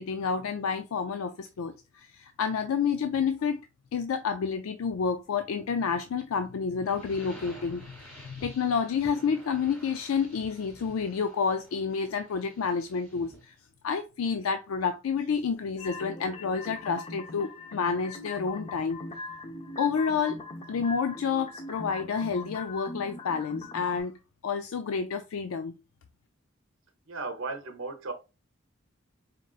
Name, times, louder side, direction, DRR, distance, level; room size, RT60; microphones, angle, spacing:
voice 1, 0.0-3.6 3.9-13.5 13.8-19.0 19.8-24.1 24.4-25.8, left 6 dB, 90° left, 0.4 m, -29 dB
sound 1, 6.8-13.5, right 1 dB, 10° left, 2.2 m, -51 dB
sound 2, 15.8-24.0, left 2 dB, 30° left, 0.6 m, -41 dB
voice 2, 27.1-28.1, right 3 dB, 70° right, 0.7 m, -35 dB
4.2 x 3.7 x 2.4 m
head